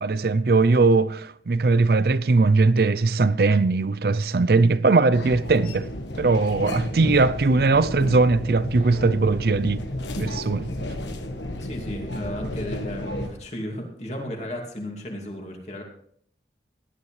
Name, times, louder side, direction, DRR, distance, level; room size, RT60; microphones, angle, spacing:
voice 1, 0.0-5.9 6.2-9.8 10.2-10.7, right 3 dB, 55° right, 0.5 m, -20 dB
sound 1, 5.1-13.3, left 1 dB, 85° left, 1.5 m, -32 dB
voice 2, 11.6-15.8, left 1 dB, 40° left, 2.5 m, -34 dB
17.5 x 11.0 x 3.3 m
head